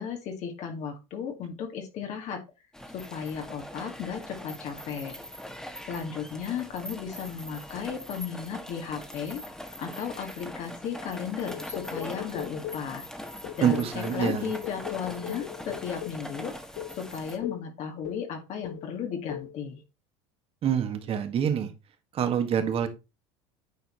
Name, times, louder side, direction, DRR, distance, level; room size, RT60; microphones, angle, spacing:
voice 1, 0.0-2.4 2.9-5.2 5.9-9.4 9.8-13.0 13.5-16.5 16.9-19.8, left 7 dB, 55° left, 4 dB, 1.9 m, -35 dB
sound 1, 2.7-17.4, left 1 dB, 5° left, 1.5 m, -41 dB
sound 2, 11.5-12.9 13.4-16.3 16.8-17.0 17.4-17.7 18.0-18.3 18.6-18.9 19.3-19.5, left 13 dB, 75° left, 0.6 m, -39 dB
voice 2, 13.6-14.5 20.6-21.7 22.1-22.9, right 8 dB, 40° right, 7 dB, 1.8 m, -26 dB
9.4 x 4.4 x 4.3 m, 0.27 s
supercardioid pair, 120°, 14 cm